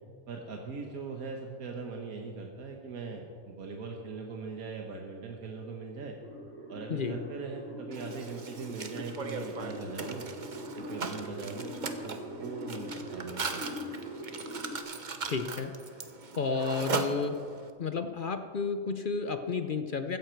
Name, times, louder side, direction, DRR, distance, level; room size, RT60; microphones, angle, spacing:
voice 1, 0.3-6.2 6.7-10.3 10.7-11.7 12.0-13.8, right 4 dB, 85° right, 1 dB, 1.7 m, -40 dB
sound 1, 6.2-14.8, equal, 10° left, 2.5 m, -42 dB
Mechanisms, 7.9-17.7, right 4 dB, 40° right, 0.9 m, -39 dB
voice 2, 15.2-15.7 16.3-17.4 17.8-20.2, left 4 dB, 50° left, 9 dB, 0.7 m, -31 dB
16.0 x 14.0 x 4.6 m, 2.2 s
omnidirectional pair, 1.5 m